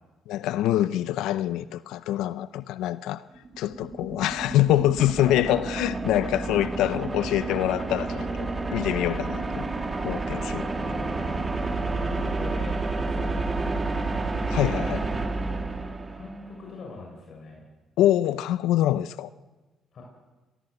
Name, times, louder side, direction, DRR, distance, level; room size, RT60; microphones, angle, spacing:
voice 1, 0.3-3.2 3.6-9.7 10.0-10.7 14.5-15.1 18.0-19.3, left 13 dB, 85° left, 0.7 m, -25 dB
sound 1, 3.4-16.5, right 3 dB, 25° right, 2.7 m, -30 dB
voice 2, 11.8-14.1 16.1-17.6 19.9-20.0, left 4 dB, 55° left, 6.4 m, -42 dB
24.0 x 18.5 x 8.1 m
cardioid pair, 85°, 0 cm